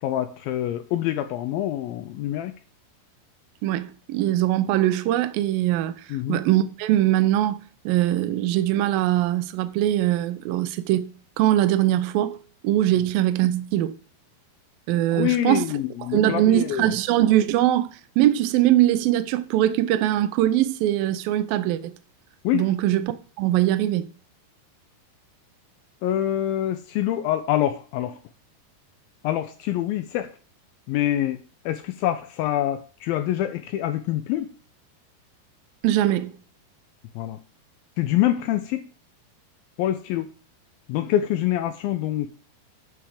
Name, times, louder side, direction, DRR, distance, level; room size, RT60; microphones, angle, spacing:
voice 1, 0.0-2.5 6.1-6.4 15.1-16.9 22.4-22.7 26.0-28.2 29.2-30.3 30.9-34.5 37.2-37.4 38.0-38.8 39.8-40.3 40.9-42.3, left 12 dB, 85° left, 2.1 m, -25 dB
voice 2, 3.6-7.6 7.9-12.4 12.6-13.9 14.9-15.7 16.1-21.9 22.5-23.1 23.4-24.1 35.8-36.4, right 13 dB, 75° right, 2.2 m, -22 dB
11.5 x 4.8 x 4.9 m
omnidirectional pair, 4.8 m